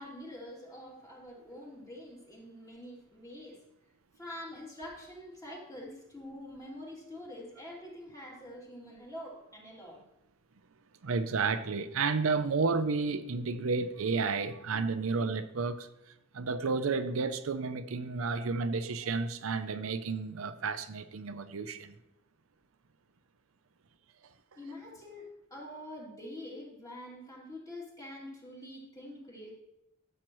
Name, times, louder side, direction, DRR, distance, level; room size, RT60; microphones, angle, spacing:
voice 1, 0.0-3.6 4.2-10.0 24.5-29.6, left 1 dB, 15° left, 2.8 m, -46 dB
voice 2, 11.0-15.9 16.3-22.0, right 4 dB, 85° right, 0.6 m, -31 dB
13.5 x 7.4 x 3.1 m
head